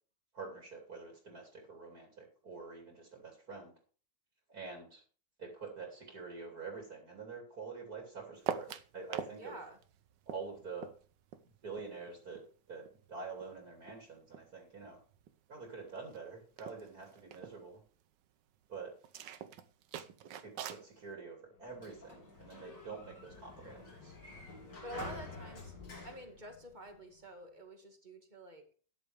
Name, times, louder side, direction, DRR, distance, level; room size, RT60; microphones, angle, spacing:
voice 1, 0.3-3.7 4.5-5.0 5.4-9.6 10.3-10.9 11.6-12.4 12.7-15.0 15.5-17.8 18.7-18.9 20.4-24.2 24.9-25.2, right 4 dB, 55° right, 0 dB, 3.2 m, -46 dB
sound 1, 8.4-9.4 9.6-12.5 12.8-14.6 14.8-15.3 15.7-15.8 16.0-16.2 16.5-17.5 19.0-20.9, right 9 dB, 75° right, 1.5 m, -43 dB
voice 2, 9.3-9.8 23.6-23.9 24.8-25.7 26.0-28.6, right 1 dB, 25° right, 4 dB, 2.0 m, -48 dB
Sliding door, 21.5-27.2, left 3 dB, 75° left, 4.0 m, -49 dB
13.0 x 10.0 x 3.4 m, 0.40 s
omnidirectional pair, 1.9 m